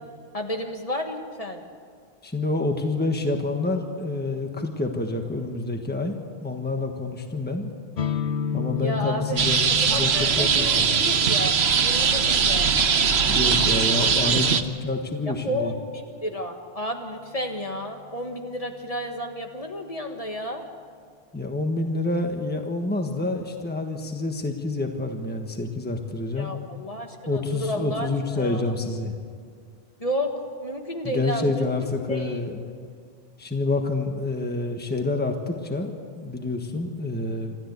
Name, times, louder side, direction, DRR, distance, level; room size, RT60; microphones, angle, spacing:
voice 1, 0.3-1.6 8.8-9.4 9.7-11.5 11.8-12.7 15.3-20.6 26.4-28.1 28.3-28.7 30.0-31.7 32.1-32.4, equal, 35° left, 3 dB, 1.7 m, -31 dB
voice 2, 2.2-6.1 6.4-7.7 8.5-10.9 13.2-15.7 21.3-26.5 27.3-29.1 31.0-32.7 33.4-37.6, left 2 dB, 10° left, 4 dB, 1.4 m, -28 dB
sound 1, 8.0-15.6, left 8 dB, 65° left, 1.0 m, -34 dB
sound 2, 9.4-14.6, right 6 dB, 85° right, 1.2 m, -21 dB
27.0 x 13.5 x 8.2 m, 2.1 s
omnidirectional pair, 1.1 m